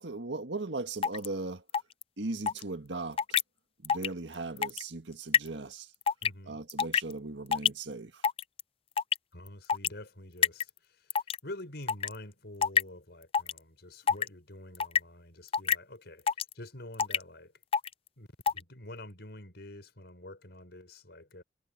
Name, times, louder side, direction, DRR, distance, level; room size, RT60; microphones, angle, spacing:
voice 1, 0.0-1.6 2.2-3.4 3.8-5.9 6.5-8.3, right 3 dB, 75° right, 1.7 m, -38 dB
sound 1, 1.0-1.3 1.7-2.0 2.5-2.6 3.2-3.4 3.8-4.1 4.3-4.8 5.3-5.5 6.1-6.3 6.7-7.1 7.5-7.7 8.2-8.6 9.0-9.2 9.7-9.9 10.4-10.7 11.1-11.4 11.9-12.1 12.6-12.8 13.3-13.6 14.1-14.3 14.7-15.0 15.5-15.8 16.3-16.5 17.0-17.2 17.7-17.9 18.4-18.6, left 7 dB, 30° left, 0.4 m, -26 dB
voice 2, 6.2-6.6 9.3-16.3 16.5-17.5 18.2-21.4, left 1 dB, 65° left, 6.3 m, -47 dB
head